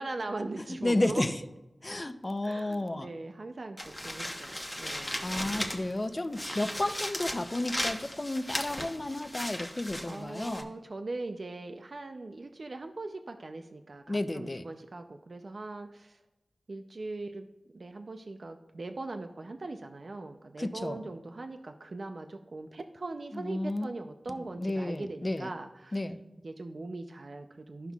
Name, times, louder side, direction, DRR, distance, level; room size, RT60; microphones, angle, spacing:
voice 1, 0.0-1.3 2.4-5.4 6.3-6.6 10.1-16.2 16.7-17.5 17.7-26.0 26.4-27.9, right 2 dB, 70° right, 6 dB, 0.5 m, -40 dB
voice 2, 0.7-1.3 1.8-3.1 5.2-10.7 14.1-14.6 20.6-21.0 23.3-23.9 24.4-25.5 25.9-26.2, left 1 dB, 35° left, 10 dB, 0.5 m, -32 dB
sound 1, 3.8-6.0 6.3-10.6, equal, 10° left, 1.0 m, -36 dB
13.0 x 5.6 x 2.3 m, 0.97 s
wide cardioid pair, 55°, 0 cm